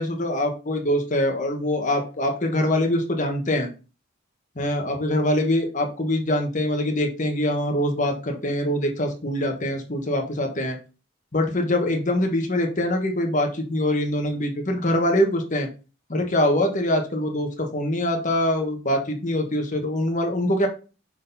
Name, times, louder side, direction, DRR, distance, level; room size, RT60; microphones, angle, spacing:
voice 1, 0.0-3.7 4.5-10.8 11.3-15.7 16.1-20.7, left 1 dB, 35° left, 4 dB, 1.3 m, -24 dB
6.4 x 4.1 x 4.0 m, 0.34 s
head